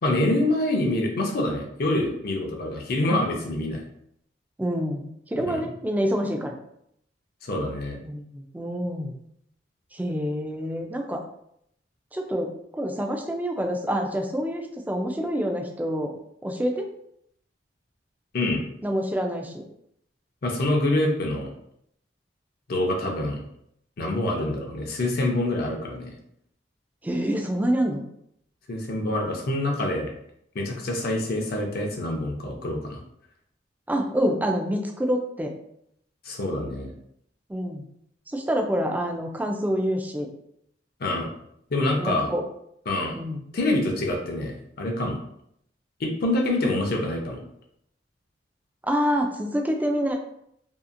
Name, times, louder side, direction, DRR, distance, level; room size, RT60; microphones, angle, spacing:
voice 1, 0.0-3.8 5.4-5.6 7.4-8.0 18.3-18.6 20.4-21.5 22.7-23.4 24.0-26.1 28.7-30.1 30.5-33.0 36.2-36.9 41.0-41.3 41.7-42.3 42.9-43.1 43.5-45.2 46.0-47.4, left 1 dB, 55° left, 1 dB, 0.5 m, -26 dB
voice 2, 4.6-6.6 8.0-9.2 9.9-11.2 12.1-16.1 16.4-16.9 18.8-19.6 27.0-28.0 33.9-35.5 37.5-37.9 38.3-40.3 42.0-42.4 43.1-43.4 48.8-50.2, equal, 10° right, 2 dB, 0.3 m, -27 dB
2.7 x 2.4 x 2.4 m, 0.73 s
head